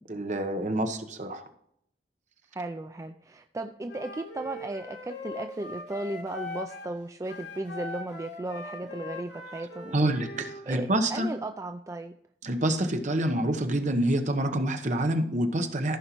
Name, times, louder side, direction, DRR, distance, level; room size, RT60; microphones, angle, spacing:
voice 1, 0.1-1.4 9.9-11.3 12.4-16.0, right 1 dB, 45° right, 7 dB, 1.0 m, -27 dB
voice 2, 2.5-10.1 10.7-12.1, right 2 dB, 20° right, 6 dB, 0.4 m, -36 dB
Wind instrument woodwind instrument, 3.9-7.0 7.2-10.6, left 3 dB, 85° left, 2.3 m, -41 dB
15.0 x 5.5 x 3.0 m, 0.71 s
head